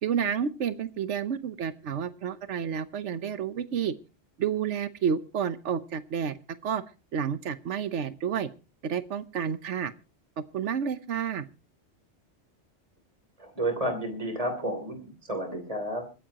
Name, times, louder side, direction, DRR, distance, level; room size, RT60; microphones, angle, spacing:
voice 1, 0.0-3.9 4.4-6.4 6.6-6.8 7.1-8.5 8.8-9.9 10.4-11.5, right 7 dB, 85° right, 14 dB, 1.2 m, -30 dB
voice 2, 13.4-15.0 15.3-16.0, right 1 dB, 30° right, 6 dB, 3.3 m, -31 dB
25.5 x 10.0 x 2.9 m, 0.32 s
omnidirectional pair, 1.2 m